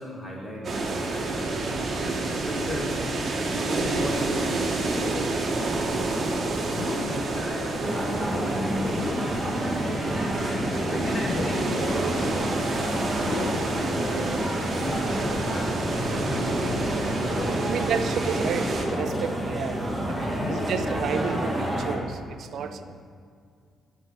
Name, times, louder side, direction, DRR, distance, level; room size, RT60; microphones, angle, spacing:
voice 1, 0.0-3.0 3.5-6.1 6.7-10.1 10.9-14.4 14.7-18.1 18.3-18.4 20.1-20.8 22.5-22.7, left 1 dB, 35° left, -3 dB, 2.0 m, -36 dB
sound 1, 0.6-18.9, right 2 dB, 50° right, 1.2 m, -29 dB
sound 2, 6.7-7.4 8.8-9.6 11.1-11.9 13.1-13.9 15.4-15.8 17.2-17.7 18.8-19.2 20.3-21.0, left 4 dB, 55° left, 0.6 m, -36 dB
sound 3, 7.8-22.0, equal, 5° right, 1.6 m, -29 dB
voice 2, 17.6-19.8 20.1-22.8, right 7 dB, 70° right, 10 dB, 0.5 m, -31 dB
5.9 x 5.8 x 7.0 m, 2.2 s
cardioid pair, 90°, 0 cm